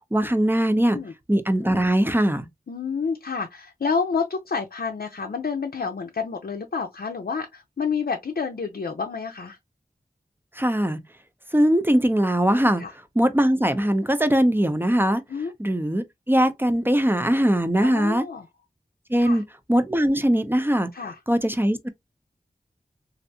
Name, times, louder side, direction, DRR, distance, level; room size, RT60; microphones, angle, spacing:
voice 1, 0.1-1.0 1.3-2.5 10.6-11.0 11.5-12.8 13.2-15.2 15.6-18.2 19.1-19.4 19.7-20.9 21.3-21.9, right 1 dB, 15° right, 0.6 m, -21 dB
voice 2, 2.7-9.6 12.8-12.9 15.3-15.5 17.8-18.5 19.2-19.4 20.9-21.2, left 5 dB, 75° left, 0.6 m, -29 dB
3.2 x 2.6 x 2.7 m
wide cardioid pair, 50°, 16 cm